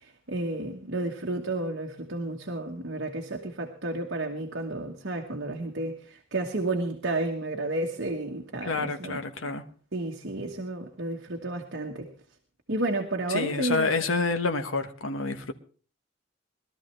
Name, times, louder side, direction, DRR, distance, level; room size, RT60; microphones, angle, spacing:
voice 1, 0.0-9.2 9.9-12.1 12.7-13.9, right 2 dB, 60° right, 1.3 m, -32 dB
voice 2, 8.6-9.6 13.3-15.5, left 3 dB, 80° left, 1.2 m, -28 dB
21.5 x 13.0 x 3.3 m
head